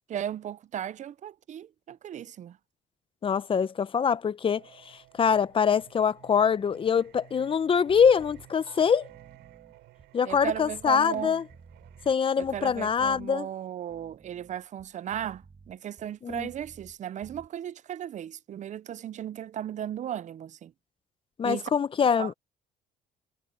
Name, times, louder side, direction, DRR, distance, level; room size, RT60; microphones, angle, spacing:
voice 1, 0.1-2.6 10.3-11.4 12.4-20.7 21.4-21.7 22.2-22.3, right 10 dB, 45° right, 0.6 m, -36 dB
voice 2, 3.2-9.1 10.1-11.4 12.1-13.5 16.2-16.5 21.4-22.3, left 7 dB, 30° left, 0.8 m, -24 dB
Singing, 4.5-12.1, right 18 dB, 90° right, 7.5 m, -55 dB
sound 1, 7.9-8.5 9.0-12.2 12.4-13.3 13.8-17.0 17.2-17.5, right 4 dB, 25° right, 3.3 m, -53 dB
cardioid pair, 110°, 17 cm